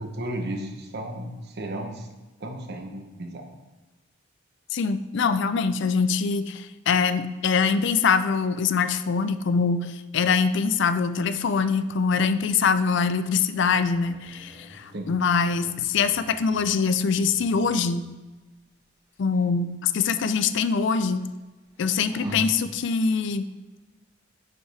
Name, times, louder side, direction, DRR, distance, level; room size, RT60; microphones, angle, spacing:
voice 1, 0.0-2.1 2.4-3.5 14.9-15.1 22.2-22.5, right 1 dB, 55° right, 4 dB, 0.9 m, -34 dB
voice 2, 4.7-18.1 19.2-21.2 21.8-23.5, left 5 dB, 60° left, 12 dB, 0.4 m, -23 dB
sound 1, 11.1-18.0 19.1-19.4 19.8-19.9 20.4-20.5 20.7-21.4 21.7-22.4, equal, 20° right, 1.4 m, -52 dB
9.3 x 5.4 x 3.3 m, 1.2 s
head